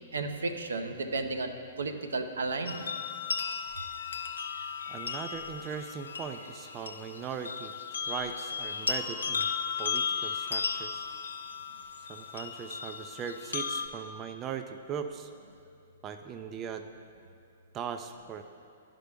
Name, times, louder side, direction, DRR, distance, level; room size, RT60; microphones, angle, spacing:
voice 1, 0.1-2.9, right 3 dB, 80° right, 6 dB, 0.6 m, -33 dB
sound 1, 2.7-13.9, left 6 dB, 80° left, 0.5 m, -35 dB
voice 2, 4.9-9.5 9.8-11.1 12.1-15.3 16.0-16.8 17.7-18.4, right 7 dB, 25° right, 7 dB, 0.3 m, -39 dB
11.0 x 5.2 x 3.4 m, 2.4 s
hypercardioid pair, 120°, 0 cm